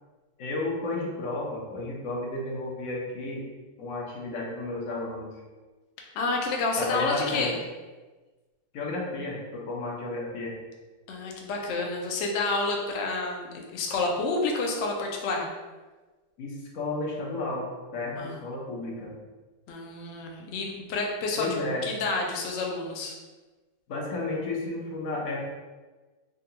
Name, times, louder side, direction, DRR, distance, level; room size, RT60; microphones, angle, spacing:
voice 1, 0.4-3.4 3.8-5.3 6.8-7.5 8.7-10.5 16.4-17.7 17.9-19.1 21.4-21.8 23.9-25.4, left 2 dB, 65° left, -3 dB, 1.1 m, -32 dB
voice 2, 6.1-7.5 11.1-15.5 18.2-18.4 19.7-21.5 21.8-23.2, left 3 dB, 80° left, 0 dB, 0.6 m, -29 dB
3.6 x 2.2 x 2.7 m, 1.3 s
omnidirectional pair, 1.7 m